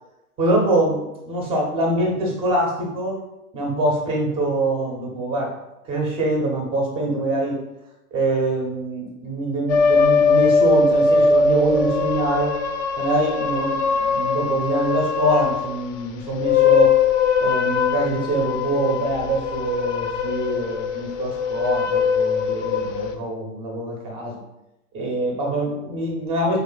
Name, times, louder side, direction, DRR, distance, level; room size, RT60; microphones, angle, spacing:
voice 1, 0.4-3.2 3.5-5.6 5.8-7.6 8.1-12.5 12.9-16.9 17.4-24.4 24.9-26.6, right 1 dB, 15° right, 0 dB, 0.4 m, -24 dB
sound 1, 9.7-15.8 16.3-23.1, left 5 dB, 55° left, 0.5 m, -21 dB
3.2 x 2.5 x 3.8 m, 0.93 s
hypercardioid pair, 115°, 46 cm